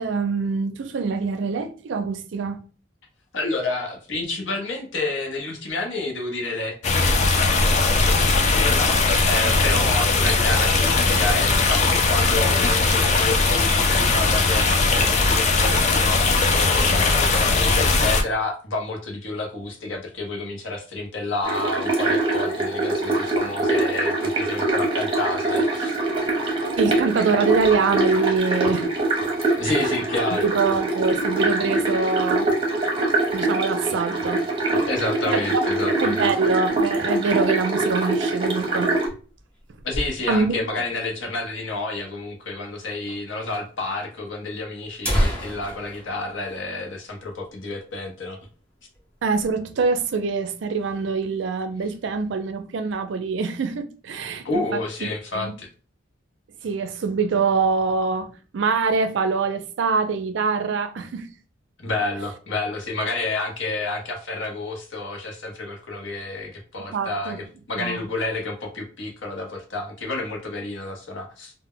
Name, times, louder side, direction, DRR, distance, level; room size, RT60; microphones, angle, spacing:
voice 1, 0.0-2.6 16.9-17.0 26.8-28.8 29.6-30.0 30.3-32.5 33.3-34.4 35.3-35.6 36.0-38.9 40.3-40.5 49.2-54.4 54.7-54.8 55.3-55.5 56.6-58.3 58.5-61.3 66.9-67.4 67.8-68.0, right 4 dB, 65° right, 0.4 m, -24 dB
voice 2, 3.3-26.0 29.6-30.5 34.7-36.3 39.8-48.4 54.4-55.7 61.8-71.5, left 2 dB, 70° left, 0.8 m, -30 dB
sound 1, 6.8-18.2, left 3 dB, 35° left, 0.4 m, -19 dB
sound 2, 21.4-39.1, right 2 dB, 25° right, 0.6 m, -24 dB
sound 3, 39.1-40.7 41.0-41.1 41.3-41.4 42.1-42.2 43.1-43.2 43.5-43.6 44.4-44.5 44.8-47.4 47.7-47.9 48.3-48.5 48.9-49.5, equal, 5° left, 0.7 m, -29 dB
2.1 x 2.1 x 3.6 m
head